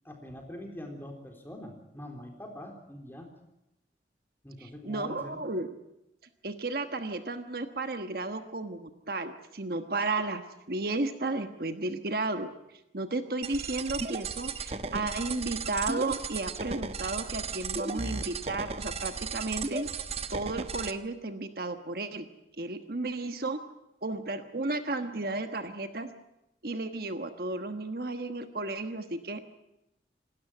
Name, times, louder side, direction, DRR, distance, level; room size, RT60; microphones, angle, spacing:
voice 1, 0.0-3.3 4.4-5.5, left 1 dB, 10° left, 3 dB, 3.8 m, -44 dB
voice 2, 4.6-5.8 6.4-12.5 12.9-19.8 20.3-22.3 22.6-23.6 24.0-26.1 26.6-29.5, right 2 dB, 60° right, 8 dB, 1.3 m, -33 dB
sound 1, 13.4-20.9, right 4 dB, 35° right, 1.0 m, -35 dB
27.0 x 13.0 x 9.2 m, 0.89 s
head